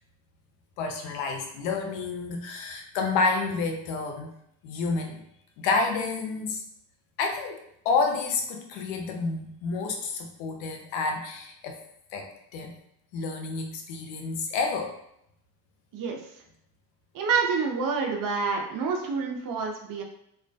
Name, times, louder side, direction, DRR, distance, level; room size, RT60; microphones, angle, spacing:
voice 1, 0.8-4.3 4.6-5.2 5.6-6.6 7.2-7.6 7.8-11.8 12.1-12.7 13.1-14.9, left 4 dB, 85° left, 3 dB, 0.6 m, -29 dB
voice 2, 17.1-20.0, right 5 dB, 45° right, 2 dB, 0.6 m, -27 dB
2.3 x 2.1 x 2.5 m, 0.74 s
supercardioid pair, 90°, 48 cm